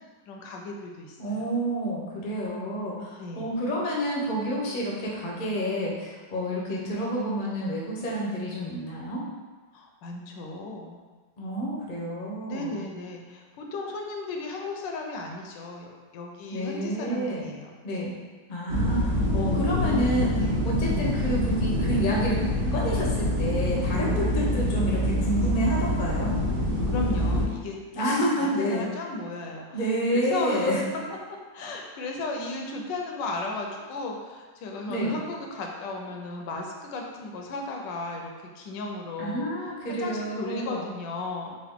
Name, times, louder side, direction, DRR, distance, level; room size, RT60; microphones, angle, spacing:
voice 1, 0.3-1.5 3.2-3.5 9.7-11.0 12.4-18.2 20.4-20.7 26.9-31.0 31.3-39.5 39.8-41.6, left 2 dB, 85° left, 1 dB, 1.3 m, -35 dB
voice 2, 1.2-9.2 11.4-12.8 16.5-17.5 17.8-18.1 18.5-22.4 22.7-26.4 27.9-28.9 29.7-30.8 34.9-35.1 39.2-40.9, equal, 50° left, -4 dB, 0.5 m, -29 dB
sound 1, 18.7-27.5, left 1 dB, 60° right, 1.2 m, -25 dB
3.8 x 2.5 x 3.5 m, 1.4 s
omnidirectional pair, 1.9 m